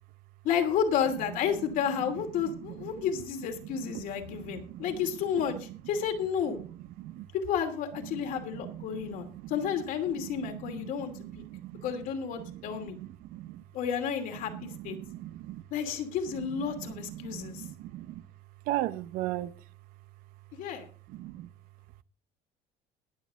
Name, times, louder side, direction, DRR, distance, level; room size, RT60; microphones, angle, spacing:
voice 1, 0.4-6.6 7.3-11.4 11.8-13.0 13.7-15.0 15.7-17.6 20.5-20.9, left 7 dB, 65° left, 2.7 m, -31 dB
voice 2, 2.4-3.1 3.6-5.0 5.5-5.8 6.6-7.3 8.1-9.5 10.1-11.9 12.4-13.6 14.4-15.6 16.4-18.2 18.7-19.5 21.1-21.5, right 15 dB, 75° right, 0.8 m, -39 dB
21.0 x 7.3 x 3.7 m
cardioid pair, 130°, 15 cm